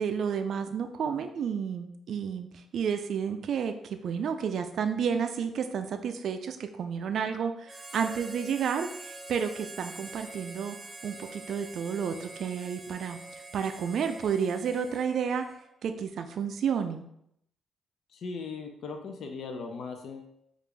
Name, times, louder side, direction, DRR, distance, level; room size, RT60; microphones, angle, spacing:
voice 1, 0.0-10.8 11.0-15.5 15.8-17.0, right 7 dB, 65° right, 7 dB, 0.3 m, -31 dB
Harmonica, 7.6-15.7, right 2 dB, 15° right, 0.6 m, -45 dB
voice 2, 18.1-20.2, left 4 dB, 65° left, 4 dB, 0.5 m, -38 dB
5.1 x 2.4 x 3.3 m, 0.75 s
cardioid pair, 90°, 0 cm